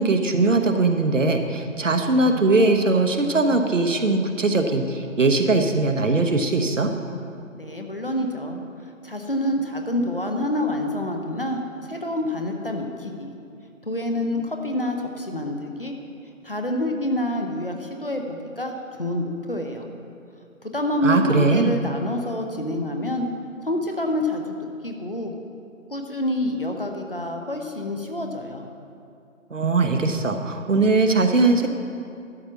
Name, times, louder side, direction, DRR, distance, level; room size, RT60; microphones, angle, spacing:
voice 1, 0.0-6.9 21.0-21.7 29.5-31.7, right 3 dB, 65° right, 5 dB, 1.0 m, -20 dB
voice 2, 7.5-8.6 9.0-13.3 13.8-16.0 16.4-18.7 19.0-19.9 20.6-23.3 23.6-24.6 24.8-25.3 25.9-28.6, left 1 dB, 40° left, 3 dB, 0.8 m, -27 dB
12.0 x 4.8 x 7.2 m, 2.6 s
figure-of-eight pair, 180°, 41 cm